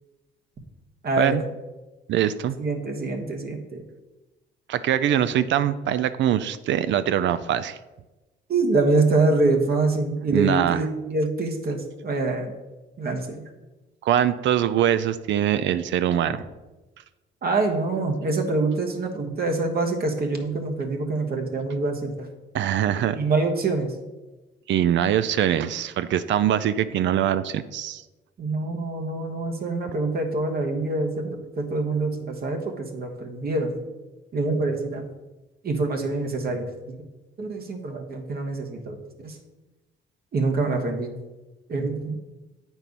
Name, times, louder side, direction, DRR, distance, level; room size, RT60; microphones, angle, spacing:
voice 1, 1.0-1.4 2.6-3.8 8.5-12.5 13.0-13.5 17.4-22.3 23.0-23.9 28.4-33.8 34.3-35.0 35.6-37.0 37.4-39.0 39.2-39.4 40.3-41.1 41.7-42.2, right 3 dB, 50° right, 3 dB, 1.3 m, -25 dB
voice 2, 2.1-2.6 4.7-7.8 10.3-10.8 14.0-16.4 22.5-23.2 24.7-28.0, right 10 dB, 70° right, 13 dB, 0.4 m, -23 dB
8.3 x 4.5 x 5.3 m, 1.1 s
cardioid pair, 90°, 20 cm